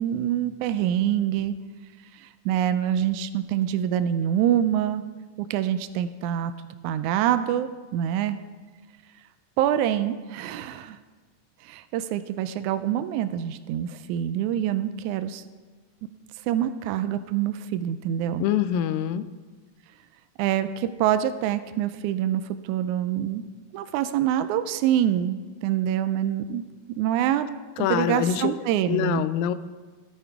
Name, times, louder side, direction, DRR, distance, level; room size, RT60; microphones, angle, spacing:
voice 1, 0.0-1.5 2.1-5.0 5.5-6.5 6.8-8.4 9.6-11.0 11.6-15.4 16.5-18.5 20.4-23.4 23.7-26.7 27.0-27.5 27.8-29.3, right 10 dB, 85° right, 11 dB, 1.7 m, -25 dB
voice 2, 18.4-19.3 27.8-28.5 28.9-29.5, left 10 dB, 90° left, 13 dB, 2.3 m, -24 dB
13.0 x 11.0 x 4.6 m, 1.4 s
omnidirectional pair, 3.9 m